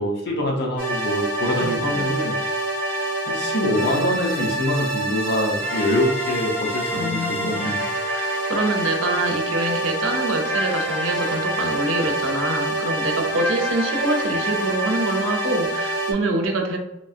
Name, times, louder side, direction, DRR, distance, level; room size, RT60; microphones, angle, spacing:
voice 1, 0.0-2.5 3.3-7.8, left 1 dB, 60° left, 0 dB, 0.7 m, -24 dB
sound 1, 0.8-16.1, right 1 dB, 10° left, 0.7 m, -26 dB
voice 2, 1.6-2.2 6.9-7.5 8.1-16.8, right 2 dB, 85° right, 3 dB, 0.6 m, -25 dB
3.1 x 2.6 x 2.4 m, 0.88 s
head